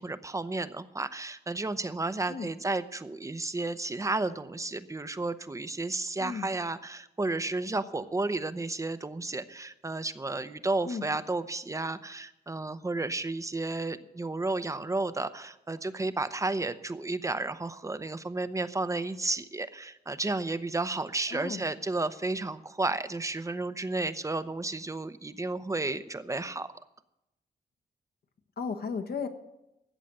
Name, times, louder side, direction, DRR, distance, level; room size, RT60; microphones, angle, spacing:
voice 1, 0.0-26.7, right 2 dB, 20° right, 12 dB, 0.8 m, -32 dB
voice 2, 21.3-21.6 28.6-29.3, left 5 dB, 65° left, 6 dB, 1.4 m, -34 dB
14.5 x 8.3 x 7.6 m, 0.90 s
cardioid pair, 95°, 17 cm